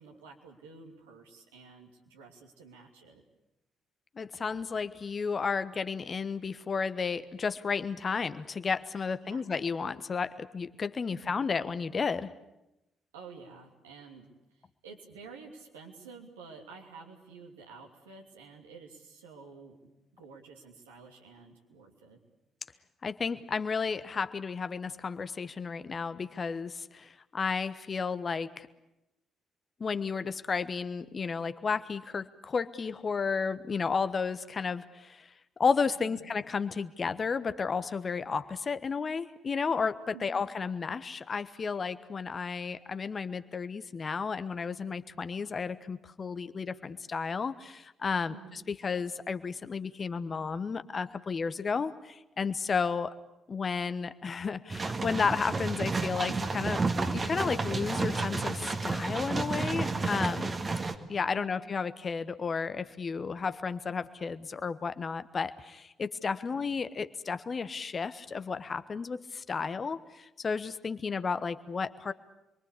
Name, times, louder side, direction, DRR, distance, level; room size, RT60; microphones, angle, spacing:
voice 1, 0.0-3.2 9.2-9.4 11.1-11.5 13.1-14.3 14.8-19.8 20.1-22.2 36.0-36.3 40.1-40.3 48.3-48.6 61.4-61.7 66.5-66.8, right 5 dB, 80° right, 1 dB, 2.9 m, -50 dB
voice 2, 4.1-12.3 23.0-28.7 29.8-35.3 35.6-53.2 53.5-56.8 57.1-60.6 61.1-72.1, left 5 dB, 40° left, 12 dB, 1.2 m, -33 dB
sound 1, 54.7-60.9, right 3 dB, 35° right, 2.0 m, -31 dB
28.0 x 22.5 x 8.5 m, 0.92 s
figure-of-eight pair, 45°, 0 cm